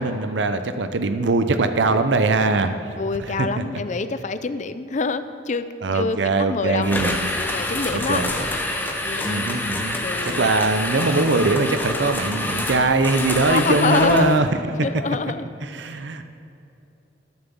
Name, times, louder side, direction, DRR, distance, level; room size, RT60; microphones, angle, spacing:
voice 1, 0.0-2.7 3.4-3.5 5.8-7.3 7.9-8.3 9.2-10.0 10.2-14.5 15.6-16.2, right 3 dB, 75° right, 9 dB, 0.6 m, -21 dB
voice 2, 3.0-5.6 5.9-6.9 7.3-8.2 9.0-9.5 10.0-10.5 13.5-14.4 14.8-15.5, left 4 dB, 40° left, 12 dB, 0.5 m, -26 dB
sound 1, 6.8-14.4, left 1 dB, 10° left, 1.1 m, -27 dB
13.0 x 7.1 x 7.0 m, 2.7 s
head